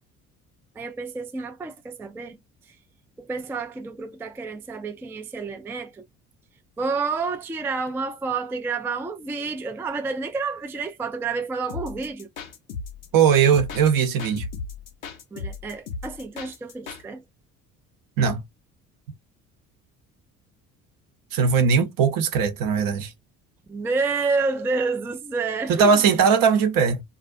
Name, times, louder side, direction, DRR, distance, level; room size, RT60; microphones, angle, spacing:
voice 1, 0.8-2.8 3.2-6.1 6.8-12.3 15.3-17.2 23.7-26.1, right 4 dB, 5° right, 0.3 m, -29 dB
sound 1, 11.7-17.0, left 5 dB, 90° left, 0.7 m, -36 dB
voice 2, 13.1-14.5 18.2-18.4 21.3-23.1 25.8-27.0, right 6 dB, 55° right, 0.8 m, -19 dB
2.4 x 2.3 x 2.4 m
hypercardioid pair, 55°, 41 cm